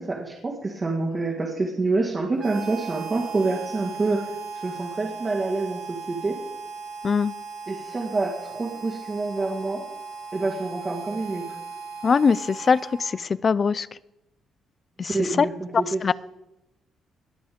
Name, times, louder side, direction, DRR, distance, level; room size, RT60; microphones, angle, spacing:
voice 1, 0.0-6.4 7.7-9.8 10.3-11.4 15.0-16.1, right 3 dB, 30° right, -1 dB, 2.1 m, -27 dB
Harmonica, 2.4-13.4, right 5 dB, 65° right, 1.7 m, -38 dB
voice 2, 12.0-13.9 15.0-15.1 15.4-15.5 16.0-16.1, left 5 dB, 40° left, 20 dB, 0.4 m, -21 dB
20.5 x 7.0 x 5.1 m, 0.90 s
cardioid pair, 90°, 0 cm